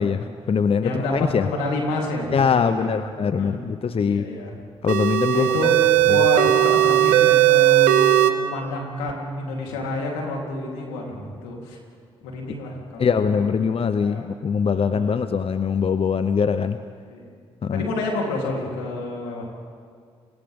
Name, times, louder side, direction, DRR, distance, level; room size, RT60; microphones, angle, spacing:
voice 1, 0.0-1.5 2.3-4.3 4.8-5.5 6.1-6.2 13.0-16.8 17.6-17.9, left 6 dB, 50° left, 11 dB, 0.8 m, -22 dB
voice 2, 0.8-3.0 3.4-4.5 5.3-11.8 12.2-13.5 14.0-14.3 14.7-15.2 17.1-17.3 17.7-19.4, left 2 dB, 90° left, -2 dB, 3.6 m, -29 dB
sound 1, 4.9-8.3, right 14 dB, 85° right, 0.8 m, -17 dB
29.0 x 25.5 x 3.7 m, 2.1 s
hypercardioid pair, 45°, 13 cm